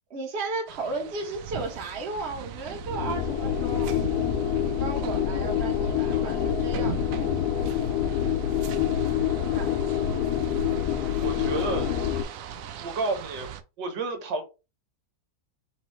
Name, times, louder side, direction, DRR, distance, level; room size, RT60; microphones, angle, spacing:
voice 1, 0.1-3.9 4.6-7.0 9.4-9.7, right 3 dB, 40° right, 1.3 m, -34 dB
sound 1, 0.7-13.6, right 9 dB, 70° right, 0.8 m, -40 dB
sound 2, 2.9-12.2, left 9 dB, 70° left, 1.0 m, -26 dB
voice 2, 11.2-11.9 12.8-13.5 13.8-14.4, right 3 dB, 85° right, 1.7 m, -30 dB
3.8 x 2.8 x 4.4 m
omnidirectional pair, 1.9 m